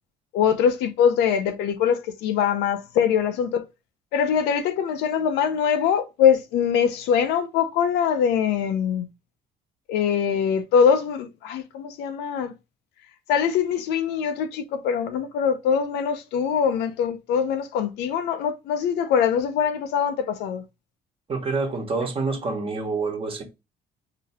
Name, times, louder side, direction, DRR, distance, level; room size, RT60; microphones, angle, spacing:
voice 1, 0.3-3.6 4.1-9.1 9.9-12.5 13.3-20.6, left 7 dB, 90° left, 0.7 m, -23 dB
voice 2, 21.3-23.4, right 4 dB, 30° right, 1.2 m, -27 dB
3.8 x 2.8 x 3.5 m
cardioid pair, 110°, 17 cm